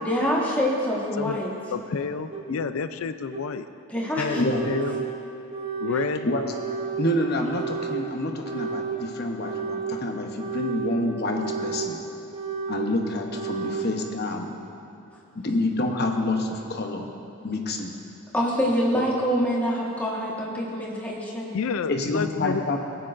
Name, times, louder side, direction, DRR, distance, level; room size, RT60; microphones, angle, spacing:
voice 1, 0.0-1.5 3.9-4.4 18.3-21.6, equal, 5° left, -5 dB, 1.4 m, -25 dB
voice 2, 1.7-3.7 4.2-5.1 5.8-6.3 21.5-22.8, left 5 dB, 70° left, 11 dB, 0.4 m, -29 dB
sound 1, 2.3-2.4 3.3-3.4 4.3-5.1 5.5-6.1 6.5-7.1 7.5-8.0 8.4-9.0 9.4-10.0 10.4-10.9 11.3-11.9 12.3-12.9 13.3-13.9, right 6 dB, 25° right, 1.2 m, -31 dB
voice 3, 7.0-12.0 12.7-14.5 15.3-17.1 17.4-17.9 18.9-19.0 21.9-22.8, left 1 dB, 45° left, 3 dB, 0.8 m, -27 dB
18.0 x 9.0 x 2.5 m, 3.0 s
head